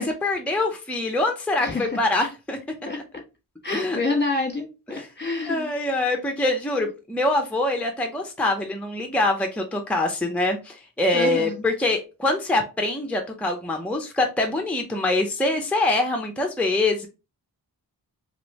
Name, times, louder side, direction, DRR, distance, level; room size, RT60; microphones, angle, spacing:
voice 1, 0.0-2.6 3.7-4.0 4.9-5.1 5.5-17.1, left 2 dB, 5° left, 3 dB, 0.6 m, -24 dB
voice 2, 1.6-2.0 2.8-3.0 3.6-5.7 11.1-11.6, left 3 dB, 25° left, 1 dB, 1.4 m, -27 dB
3.0 x 3.0 x 3.0 m, 0.29 s
wide cardioid pair, 55°, 40 cm